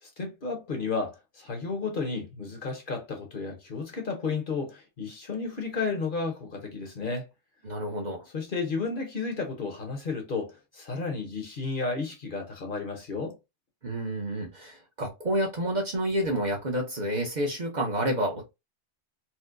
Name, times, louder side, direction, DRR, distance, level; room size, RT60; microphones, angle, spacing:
voice 1, 0.0-7.3 8.3-13.4, left 4 dB, 50° left, 0.9 m, -32 dB
voice 2, 7.6-8.3 13.8-18.4, right 1 dB, 45° right, 0.8 m, -29 dB
4.3 x 2.1 x 2.5 m
omnidirectional pair, 1.2 m